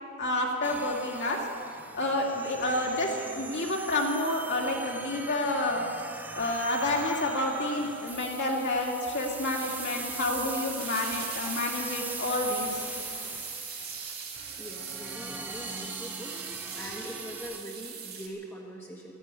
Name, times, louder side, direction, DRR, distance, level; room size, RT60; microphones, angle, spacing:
voice 1, 0.2-1.4 1.9-5.8 6.3-12.9, left 1 dB, 50° left, -2 dB, 2.6 m, -29 dB
sound 1, 0.6-17.6, right 2 dB, 10° right, 0.8 m, -41 dB
sound 2, 6.6-18.3, right 7 dB, 45° right, 2.3 m, -42 dB
voice 2, 14.6-16.3 16.8-19.2, equal, 10° left, -3 dB, 1.6 m, -42 dB
13.5 x 11.0 x 9.7 m, 2.7 s
head